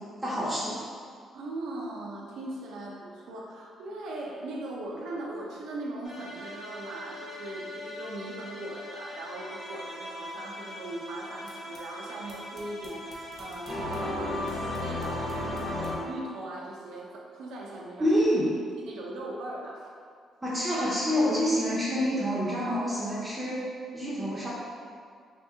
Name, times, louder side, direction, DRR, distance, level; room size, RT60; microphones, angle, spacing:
voice 1, 0.2-0.8 18.0-18.5 20.4-23.6 23.9-24.5, equal, 15° right, -8 dB, 0.7 m, -27 dB
voice 2, 1.3-18.1 18.8-19.8, right 1 dB, 85° right, -2 dB, 0.5 m, -39 dB
sound 1, 6.0-16.0, left 1 dB, 50° left, 0.9 m, -37 dB
2.7 x 2.6 x 3.5 m, 2.1 s
cardioid pair, 90°, 0 cm